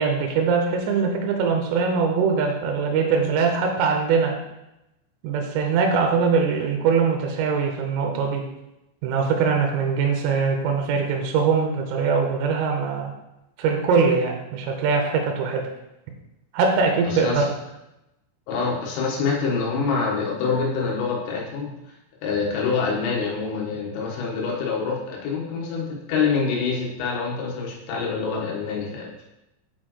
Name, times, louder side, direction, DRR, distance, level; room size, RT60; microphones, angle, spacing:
voice 1, 0.0-4.4 5.2-8.4 9.0-13.1 13.6-15.6 16.5-17.4, right 5 dB, 85° right, 2 dB, 3.3 m, -22 dB
voice 2, 17.1-17.4 18.5-21.8 22.2-29.2, left 5 dB, 80° left, -3 dB, 3.8 m, -26 dB
8.0 x 4.4 x 3.0 m, 0.91 s
omnidirectional pair, 5.9 m